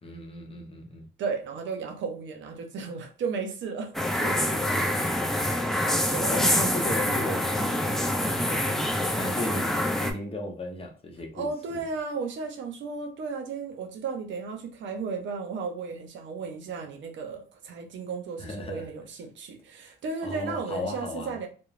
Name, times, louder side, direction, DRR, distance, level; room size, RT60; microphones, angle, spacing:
voice 1, 0.0-1.1 4.1-5.2 5.8-11.8 18.4-18.9 19.8-19.9 20.2-21.4, left 1 dB, 30° left, 0.8 m, -36 dB
voice 2, 1.2-3.9 6.1-6.5 11.3-21.5, right 4 dB, 70° right, 0.6 m, -34 dB
sound 1, 3.9-10.1, left 1 dB, ahead, 0.4 m, -26 dB
2.9 x 2.1 x 2.4 m
cardioid pair, 90°, 20 cm